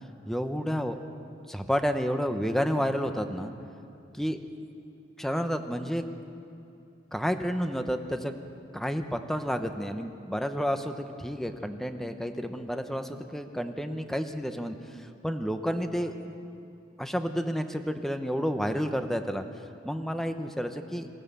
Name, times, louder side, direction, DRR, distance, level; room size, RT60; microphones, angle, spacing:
voice 1, 0.2-1.0 1.5-3.5 4.2-4.4 5.2-6.0 7.1-8.3 8.7-16.2 17.0-19.4 19.8-21.1, equal, ahead, 6 dB, 1.0 m, -30 dB
27.0 x 15.0 x 6.9 m, 2.7 s
head